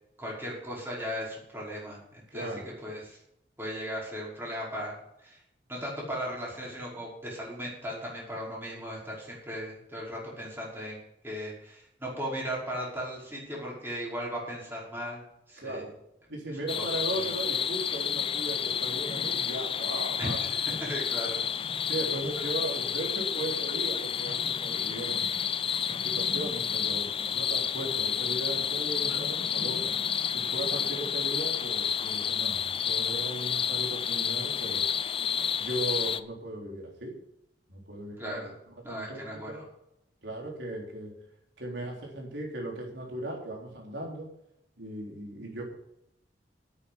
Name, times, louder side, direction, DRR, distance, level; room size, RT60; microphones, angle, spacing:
voice 1, 0.2-3.2 3.6-4.9 5.2-5.4 5.7-11.0 11.2-15.8 16.8-16.9 17.1-17.3 20.2-20.5 20.8-21.4 29.1-29.2 38.2-38.5 38.8-39.6, equal, 15° right, -5 dB, 5.3 m, -37 dB
voice 2, 2.3-2.7 15.6-15.9 16.3-20.4 20.7-20.8 21.9-25.3 25.9-29.9 30.3-34.8 35.6-37.2 37.7-38.4 38.9-39.2 39.5-39.6 40.2-41.1 41.6-44.3 44.8-45.7, right 1 dB, 85° right, -1 dB, 3.7 m, -37 dB
sound 1, 16.7-36.2, left 8 dB, 30° left, 0.5 m, -30 dB
9.4 x 8.6 x 8.2 m, 0.79 s
head